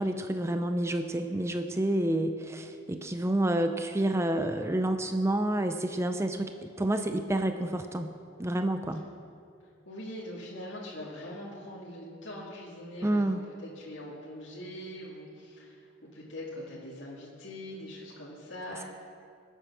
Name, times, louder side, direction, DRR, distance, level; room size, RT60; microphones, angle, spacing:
voice 1, 0.0-8.1 8.4-9.0 13.0-13.4, right 1 dB, 15° right, 7 dB, 0.5 m, -29 dB
voice 2, 9.8-18.8, left 1 dB, 75° left, -6 dB, 2.2 m, -42 dB
21.5 x 8.2 x 6.1 m, 2.4 s
head